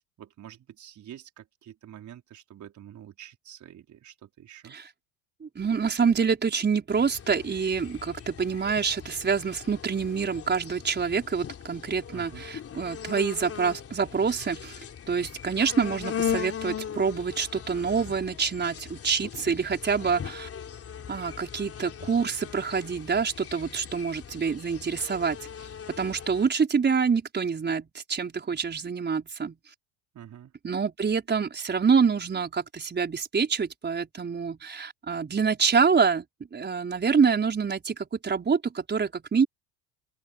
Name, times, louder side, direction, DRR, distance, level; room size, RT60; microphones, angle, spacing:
voice 1, 0.2-4.8 12.1-12.4 30.1-30.5, right 10 dB, 45° right, 4.9 m, -47 dB
voice 2, 5.4-20.5 21.1-25.4 25.9-29.6 30.6-36.2 36.5-39.5, right 5 dB, 25° right, 5.2 m, -26 dB
sound 1, 6.9-26.5, left 8 dB, 35° left, 3.6 m, -39 dB
open air
hypercardioid pair, 80°, 41 cm